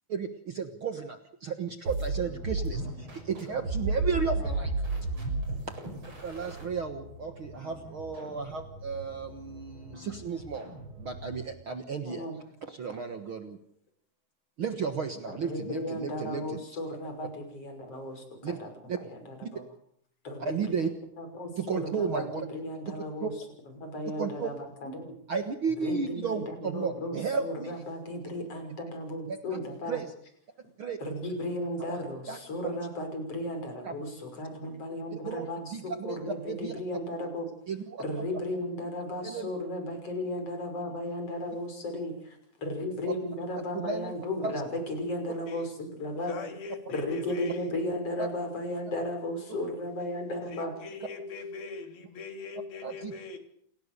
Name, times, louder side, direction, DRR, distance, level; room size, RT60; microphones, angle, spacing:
voice 1, 0.1-4.7 6.2-12.3 12.6-13.6 14.6-16.6 18.4-18.6 18.9-19.0 19.4-19.5 20.4-20.9 21.6-22.4 22.9-23.0 23.2-23.3 24.2-24.5 25.3-27.7 29.3-29.6 29.9-30.1 30.8-31.0 31.8-32.4 32.6-32.8 33.8-34.0 35.1-35.4 35.7-36.7 37.7-38.2 39.2-39.5 43.7-44.1 44.4-44.5 48.2-48.3 52.8-53.1, right 5 dB, 80° right, 7 dB, 1.1 m, -34 dB
sound 1, 1.9-11.6, right 2 dB, 30° right, 6.9 m, -35 dB
voice 2, 12.0-12.4 15.4-18.7 19.0-19.6 20.2-23.3 23.8-24.9 25.8-30.0 31.0-37.5 38.0-46.3 46.9-50.7, left 1 dB, 35° left, 5 dB, 6.8 m, -35 dB
voice 3, 46.3-47.7 50.5-53.4, left 4 dB, 65° left, 6 dB, 5.0 m, -40 dB
29.0 x 18.5 x 6.8 m, 0.67 s
omnidirectional pair, 4.7 m